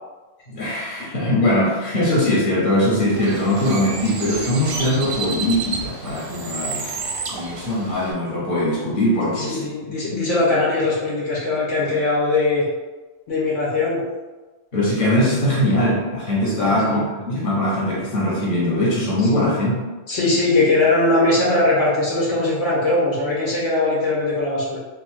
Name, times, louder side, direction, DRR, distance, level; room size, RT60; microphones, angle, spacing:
voice 1, 0.5-7.0 7.3-9.6 14.7-19.8, left 1 dB, 45° left, -6 dB, 1.3 m, -21 dB
Bird, 3.1-8.1, right 4 dB, 55° right, 0.6 m, -30 dB
voice 2, 9.2-12.6 13.3-14.0 16.6-17.1 19.3-19.6 20.1-24.8, left 2 dB, 80° left, -6 dB, 1.4 m, -20 dB
3.1 x 2.8 x 3.5 m, 1.2 s
omnidirectional pair, 1.3 m